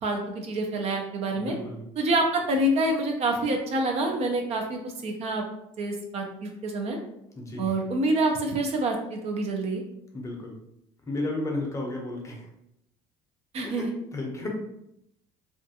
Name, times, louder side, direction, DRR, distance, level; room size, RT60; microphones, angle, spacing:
voice 1, 0.0-1.6 2.0-5.4 5.8-7.0 7.6-9.8 13.5-13.9, right 1 dB, 50° right, 3 dB, 0.5 m, -27 dB
voice 2, 1.4-1.8 7.4-7.7 10.1-10.6 11.1-12.5 13.6-14.5, left 2 dB, 20° left, 0 dB, 0.6 m, -33 dB
2.4 x 2.3 x 2.7 m, 0.79 s
cardioid pair, 115°, 14 cm